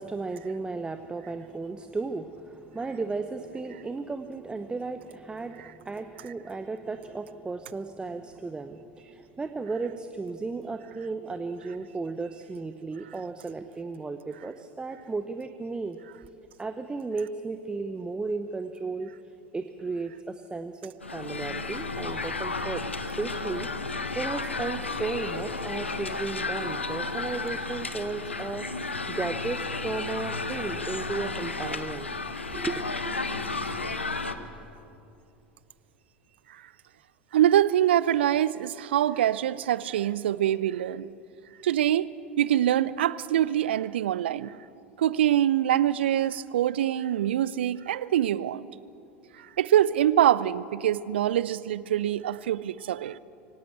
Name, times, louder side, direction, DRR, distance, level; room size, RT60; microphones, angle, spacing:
voice 1, 0.0-16.3 16.6-19.1 19.5-23.7 24.1-32.1 32.5-33.1, right 3 dB, 15° right, 9 dB, 0.9 m, -35 dB
sound 1, 21.0-34.3, left 3 dB, 85° left, 1.0 m, -33 dB
voice 2, 37.3-41.1 41.6-42.1 42.4-44.6 45.0-48.7 49.6-53.2, right 11 dB, 70° right, 19 dB, 0.5 m, -24 dB
24.0 x 17.5 x 8.1 m, 2.7 s
figure-of-eight pair, 75°, 6 cm